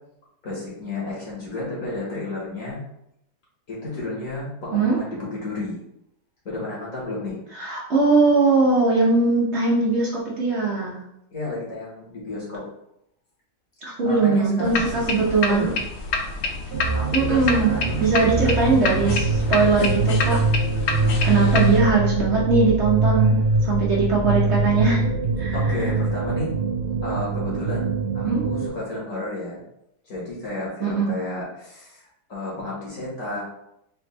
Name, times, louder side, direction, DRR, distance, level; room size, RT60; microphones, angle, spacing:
voice 1, 0.4-2.8 3.7-5.8 6.5-7.4 11.3-12.6 14.0-15.2 15.5-15.8 16.9-18.8 22.8-22.9 23.2-23.5 25.5-26.5 27.0-29.6 30.1-33.4, left 2 dB, 55° left, -5 dB, 1.8 m, -32 dB
voice 2, 7.6-11.0 13.8-15.7 17.1-20.4 21.2-25.1 25.4-25.9 28.2-28.5 30.8-31.1, right 4 dB, 50° right, -5 dB, 1.1 m, -21 dB
sound 1, 14.6-21.8, left 4 dB, 70° left, 0.6 m, -28 dB
sound 2, 16.7-28.7, right 3 dB, 70° right, 0.5 m, -23 dB
4.3 x 3.1 x 3.2 m, 0.79 s
omnidirectional pair, 1.7 m